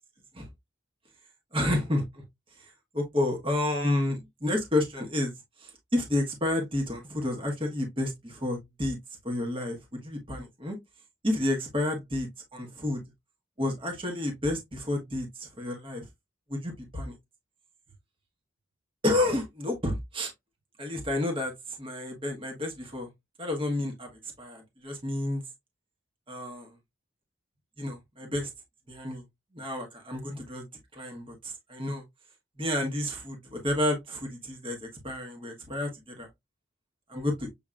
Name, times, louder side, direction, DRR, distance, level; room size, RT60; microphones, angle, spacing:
voice 1, 1.5-2.0 2.6-5.3 5.6-9.0 9.2-10.8 11.2-12.3 12.5-13.0 13.6-16.0 16.5-17.1 19.0-20.3 20.8-21.5 21.8-23.1 23.4-25.4 26.3-26.7 27.8-28.5 28.9-29.2 29.5-30.6 30.9-32.0 32.6-36.3 37.1-37.5, left 1 dB, 25° right, 1.2 m, -30 dB
7.0 x 2.9 x 2.4 m
head